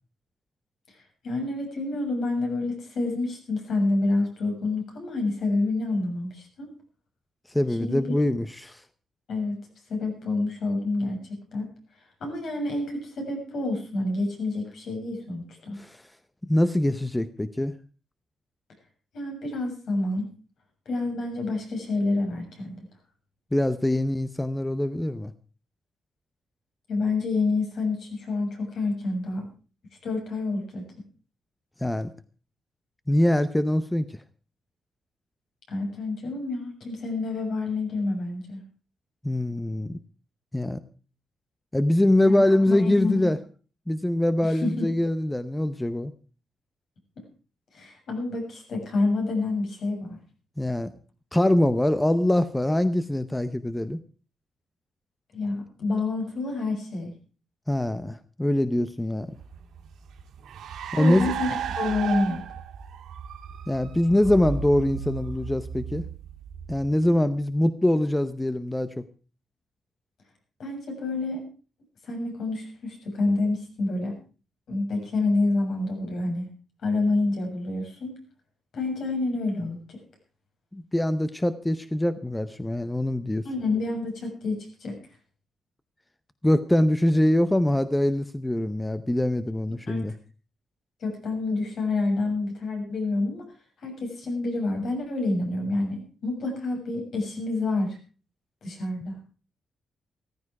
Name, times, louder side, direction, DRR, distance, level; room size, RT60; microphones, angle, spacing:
voice 1, 1.2-6.7 7.8-8.0 9.3-9.5 9.9-11.2 11.5-11.7 12.2-15.8 19.1-20.3 20.9-22.7 26.9-29.4 30.0-30.8 35.7-38.6 42.3-43.3 44.4-44.9 47.2-47.3 47.7-50.2 55.3-57.1 61.0-62.4 70.6-71.4 72.0-74.2 74.7-76.5 76.8-78.2 78.7-80.0 83.4-85.0 89.9-90.1 91.0-93.4 93.8-98.0 98.6-99.2, left 2 dB, 65° left, 3 dB, 7.0 m, -28 dB
voice 2, 7.5-8.8 15.8-16.0 16.4-17.7 23.5-25.3 31.8-32.1 33.1-34.2 39.2-40.0 40.5-40.8 41.7-43.4 43.9-46.1 50.6-50.9 51.3-54.0 57.7-59.4 61.0-61.3 63.7-66.0 66.7-69.0 80.7-83.5 86.4-90.1, left 1 dB, 10° left, 12 dB, 0.7 m, -23 dB
Car, 59.4-67.2, right 7 dB, 85° right, 2.7 m, -35 dB
15.0 x 14.5 x 4.8 m, 0.37 s
cardioid pair, 130°, 0 cm